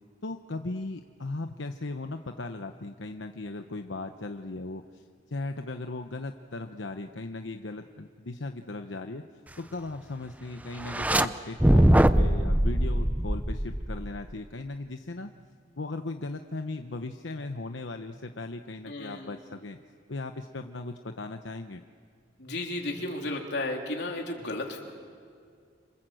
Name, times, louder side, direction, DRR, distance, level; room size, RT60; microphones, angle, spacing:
voice 1, 0.2-9.2 9.6-15.3 15.8-19.8 20.1-21.8, left 2 dB, 90° left, 6 dB, 1.0 m, -37 dB
sound 1, 10.8-11.3 11.6-14.2, right 1 dB, 10° right, 0.7 m, -22 dB
voice 2, 18.9-19.4 22.4-24.8, left 2 dB, 65° left, 1 dB, 3.6 m, -33 dB
27.5 x 27.0 x 7.8 m, 2.2 s
head